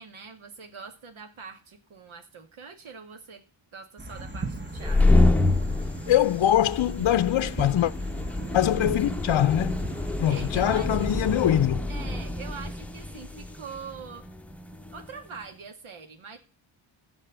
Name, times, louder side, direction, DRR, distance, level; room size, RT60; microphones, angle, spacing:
voice 1, 0.0-3.4 3.7-5.2 10.3-11.1 11.9-14.2 14.9-16.4, right 5 dB, 75° right, 2.3 m, -43 dB
sound 1, 4.0-11.5, right 2 dB, 20° right, 1.6 m, -39 dB
sound 2, 4.7-15.1, left 2 dB, 5° left, 1.0 m, -27 dB
voice 2, 6.1-7.9 8.5-9.8 10.2-11.9, left 12 dB, 65° left, 0.6 m, -23 dB
15.5 x 5.3 x 7.9 m
cardioid pair, 80°, 49 cm